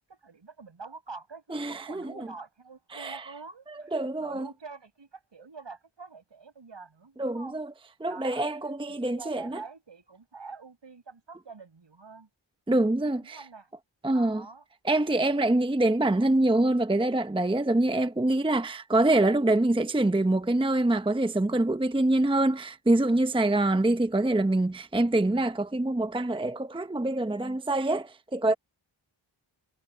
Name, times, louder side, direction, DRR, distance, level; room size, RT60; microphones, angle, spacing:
voice 1, 0.1-7.6 8.0-8.5 8.9-12.3 13.2-13.7 14.1-14.7, right 4 dB, 65° right, 7.6 m, -46 dB
voice 2, 1.5-2.3 2.9-3.3 3.9-4.5 7.2-7.7 8.0-9.6 12.7-13.4 14.0-14.4 14.8-28.5, right 2 dB, 10° right, 0.8 m, -25 dB
cardioid pair, 55°, 47 cm